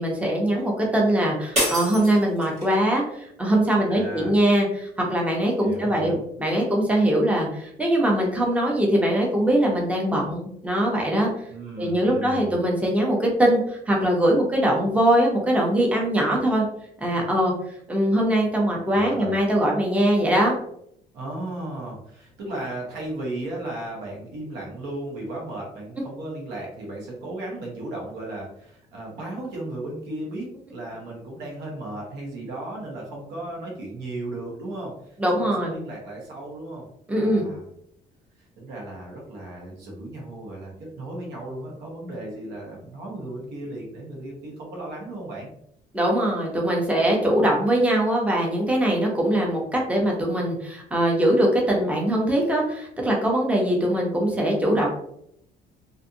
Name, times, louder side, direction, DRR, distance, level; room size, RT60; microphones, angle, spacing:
voice 1, 0.0-11.3 11.8-16.6 17.0-17.5 17.9-20.6 35.2-35.8 37.1-37.5 45.9-54.9, right 1 dB, 10° right, -1 dB, 0.7 m, -22 dB
sound 1, 1.5-2.8, equal, 40° right, 1.4 m, -27 dB
voice 2, 3.9-4.4 5.6-6.2 11.5-12.5 18.9-19.3 21.1-37.6 38.4-45.5, right 1 dB, 90° right, -2 dB, 1.0 m, -35 dB
2.5 x 2.4 x 2.6 m, 0.71 s
cardioid pair, 110°, 17 cm